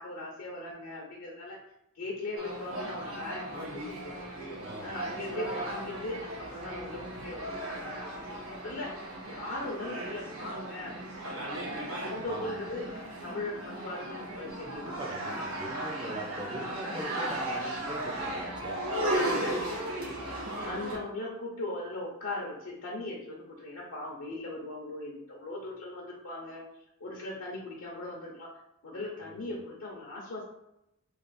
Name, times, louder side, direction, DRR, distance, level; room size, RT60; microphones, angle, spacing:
voice 1, 0.0-1.6 1.9-8.4 8.6-8.9 9.3-15.0 16.1-16.4 19.4-20.2 20.6-26.6 27.0-28.5 28.8-30.4, left 2 dB, 65° left, -3 dB, 0.7 m, -39 dB
sound 1, 2.4-21.0, right 1 dB, 75° right, 1.1 m, -36 dB
voice 2, 4.6-5.1 12.2-12.7 14.7-18.8 29.2-29.6, right 1 dB, 20° right, 0 dB, 0.6 m, -42 dB
3.3 x 2.4 x 4.0 m, 0.85 s
head